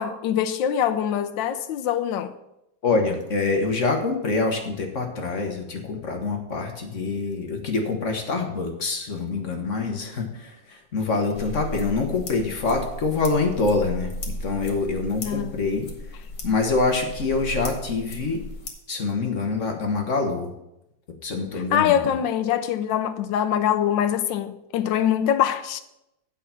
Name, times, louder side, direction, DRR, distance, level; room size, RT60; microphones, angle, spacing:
voice 1, 0.0-2.3 15.2-15.6 21.7-25.8, left 9 dB, 80° left, 1.4 m, -23 dB
voice 2, 2.8-14.1 14.4-15.9 16.4-18.4 18.9-20.5 21.2-22.1, left 3 dB, 45° left, 1.4 m, -25 dB
sound 1, 11.4-18.7, left 1 dB, 60° left, 2.1 m, -36 dB
8.4 x 5.7 x 7.1 m
omnidirectional pair, 2.1 m